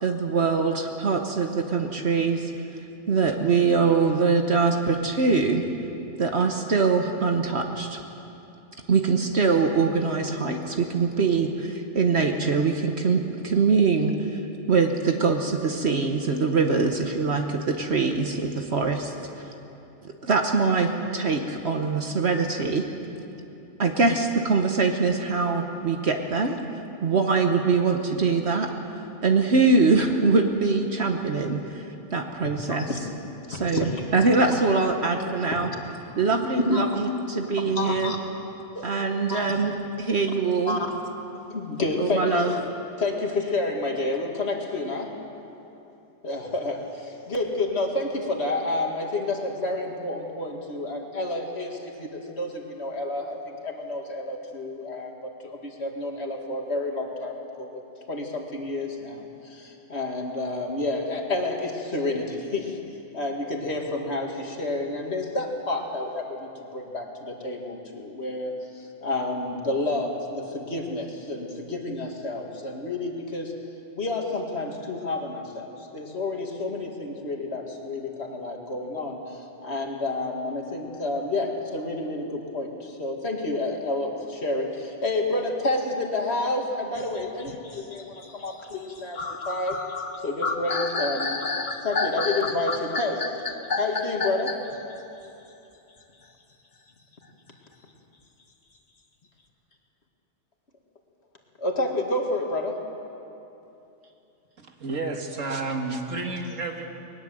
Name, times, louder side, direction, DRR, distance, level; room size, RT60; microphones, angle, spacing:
voice 1, 0.0-2.5 3.1-5.6 6.2-8.0 8.9-14.4 14.7-19.1 20.0-22.8 23.8-26.6 27.0-28.7 29.2-31.8 32.1-32.9 33.5-35.7 36.2-38.1 38.8-39.7 40.0-40.8 42.0-42.5, right 4 dB, 60° right, 4 dB, 1.4 m, -23 dB
voice 2, 33.5-34.1 36.7-36.9 37.6-38.2 38.7-38.9 39.3-39.5 40.7-40.9 41.5-42.6 43.0-45.1 46.2-57.8 58.1-62.8 63.1-73.5 73.9-89.8 90.2-91.4 91.8-93.4 93.8-94.6 101.6-102.8, left 2 dB, 55° left, 1 dB, 2.5 m, -29 dB
sound 1, 87.0-94.7, left 3 dB, 40° left, 1.3 m, -30 dB
voice 3, 104.6-106.9, right 3 dB, 90° right, 3 dB, 2.1 m, -31 dB
20.5 x 19.5 x 7.7 m, 2.9 s
omnidirectional pair, 1.3 m